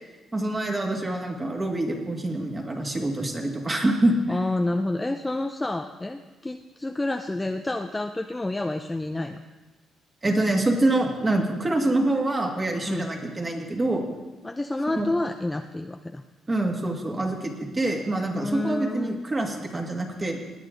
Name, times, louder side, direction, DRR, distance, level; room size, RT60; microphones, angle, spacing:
voice 1, 0.3-4.4 10.2-14.0 15.0-15.1 16.5-20.4, right 2 dB, 25° right, 2 dB, 2.1 m, -25 dB
voice 2, 4.3-9.4 12.9-13.1 14.4-16.2 18.3-19.2, left 2 dB, 15° left, 5 dB, 0.5 m, -29 dB
18.5 x 9.3 x 3.9 m, 1.2 s
cardioid pair, 90°, 0 cm